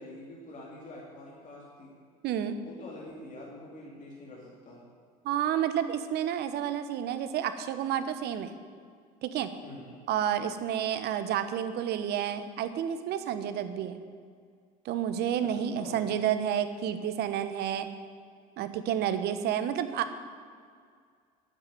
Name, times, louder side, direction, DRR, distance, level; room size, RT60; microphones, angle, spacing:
voice 1, 0.0-1.9 2.6-4.8 9.6-9.9 15.4-15.5 15.8-16.0, left 2 dB, 45° left, -4 dB, 3.0 m, -45 dB
voice 2, 2.2-2.6 5.2-8.5 9.2-9.5 10.1-14.0 14.8-17.9 18.6-20.1, right 9 dB, 60° right, 11 dB, 1.0 m, -30 dB
9.6 x 7.6 x 9.3 m, 2.1 s
supercardioid pair, 80°, 19 cm